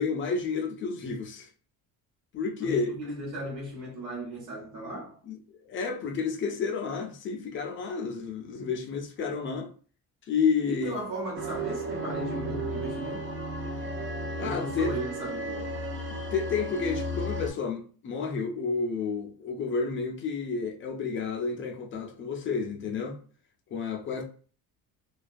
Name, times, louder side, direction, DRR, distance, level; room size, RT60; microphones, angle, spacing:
voice 1, 0.0-1.5 2.3-3.0 5.3-9.7 10.3-11.0 14.4-14.9 16.3-23.2 23.7-24.2, left 5 dB, 35° left, 0.4 m, -30 dB
voice 2, 2.6-5.2 10.7-13.3 14.4-15.7, right 1 dB, 55° right, 0.9 m, -36 dB
sound 1, 11.4-17.5, right 1 dB, 35° right, 0.4 m, -34 dB
2.4 x 2.2 x 2.5 m
cardioid pair, 170°, 36 cm